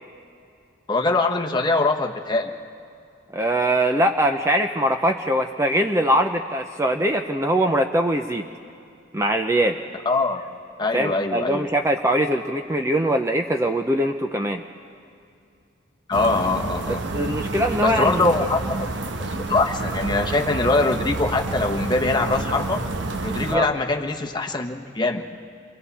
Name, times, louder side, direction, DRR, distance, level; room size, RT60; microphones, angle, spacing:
voice 1, 0.9-2.5 10.0-10.4 10.8-11.7 16.1-17.0 17.8-18.9 19.2-22.8 23.2-25.2, left 3 dB, 20° left, 3 dB, 1.1 m, -23 dB
voice 2, 3.3-8.5 9.1-9.8 10.9-14.6 16.9-18.3 23.5-23.7, right 1 dB, 15° right, 5 dB, 0.5 m, -22 dB
sound 1, 16.1-23.6, right 2 dB, 65° right, 1.0 m, -29 dB
28.0 x 22.5 x 4.1 m, 2.5 s
head